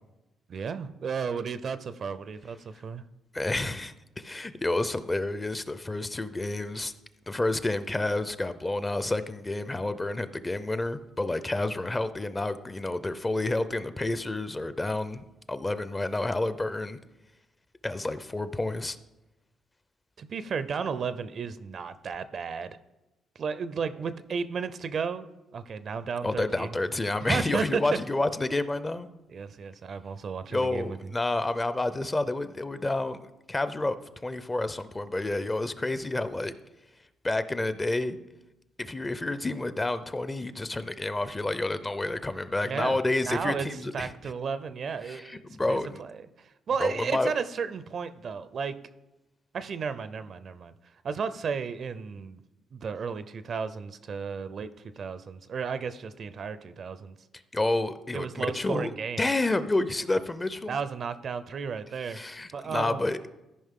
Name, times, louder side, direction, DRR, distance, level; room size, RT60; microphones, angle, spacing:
voice 1, 0.5-3.0 20.2-22.8 23.4-25.3 25.5-26.7 27.3-27.8 29.3-31.0 42.6-43.0 43.3-43.7 43.9-45.4 46.0-48.8 49.5-50.7 51.0-52.4 52.7-54.7 55.0-57.1 58.1-59.2 60.7-62.2 62.5-63.0, right 6 dB, 55° right, 13 dB, 0.5 m, -33 dB
voice 2, 3.3-6.9 7.3-17.0 17.8-19.0 26.2-29.1 30.5-34.0 34.2-36.5 37.2-38.2 38.8-44.1 45.0-46.0 46.8-47.3 57.5-58.9 59.2-60.8 62.1-63.3, left 2 dB, 20° left, 12 dB, 0.5 m, -29 dB
14.0 x 5.2 x 3.7 m, 0.99 s
cardioid pair, 90°, 0 cm